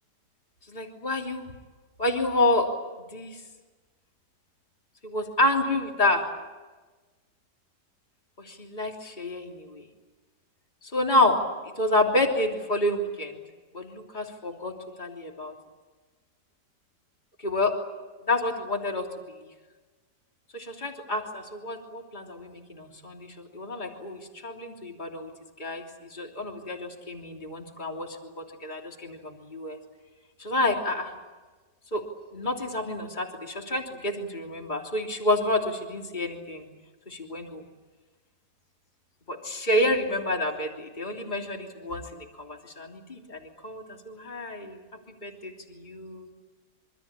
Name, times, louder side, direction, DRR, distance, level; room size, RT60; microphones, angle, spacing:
voice 1, 0.7-1.4 2.0-2.7 3.1-3.4 5.0-6.3 8.4-9.8 10.8-11.4 11.8-13.4 13.7-14.7 15.0-15.5 17.4-17.7 18.3-19.1 20.5-25.3 25.6-25.8 26.1-29.8 30.4-31.1 31.9-32.0 32.3-36.7 37.1-37.6 39.3-44.8 45.2-46.3, left 1 dB, 25° left, 1 dB, 3.3 m, -29 dB
26.5 x 25.0 x 8.7 m, 1.3 s
omnidirectional pair, 1.8 m